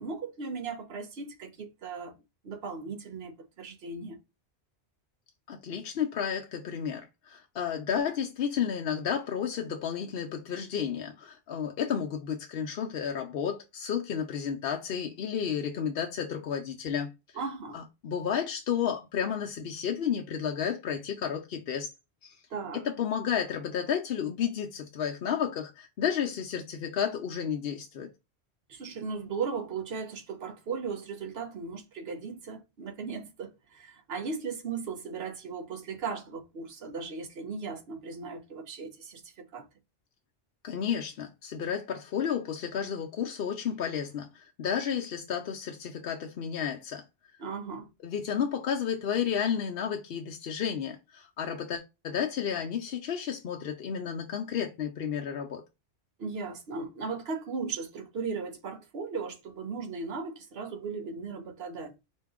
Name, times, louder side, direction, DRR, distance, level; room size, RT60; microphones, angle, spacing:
voice 1, 0.0-2.2 2.4-4.2 17.3-17.8 22.5-22.9 28.7-39.7 47.4-47.9 56.2-61.9, right 5 dB, 65° right, 1.1 m, -37 dB
voice 2, 5.5-17.1 17.7-21.9 22.2-22.3 22.8-28.1 40.6-47.0 48.0-55.6, left 8 dB, 65° left, 0.8 m, -32 dB
4.5 x 2.7 x 3.6 m
omnidirectional pair, 1.2 m